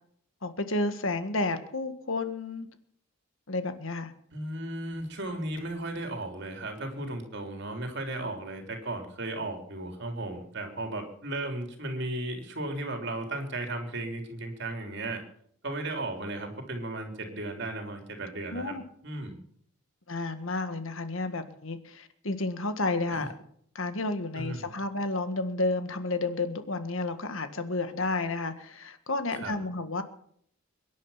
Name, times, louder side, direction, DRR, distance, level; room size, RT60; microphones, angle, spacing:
voice 1, 0.4-2.7 3.5-4.1 18.5-18.8 20.1-23.3 23.7-30.0, left 2 dB, 65° left, 9 dB, 1.7 m, -31 dB
voice 2, 4.3-15.2 15.6-18.8 19.0-19.4 23.1-23.3 24.4-24.7 29.4-29.5, right 2 dB, 55° right, 4 dB, 3.5 m, -35 dB
23.0 x 10.5 x 5.8 m, 0.66 s
head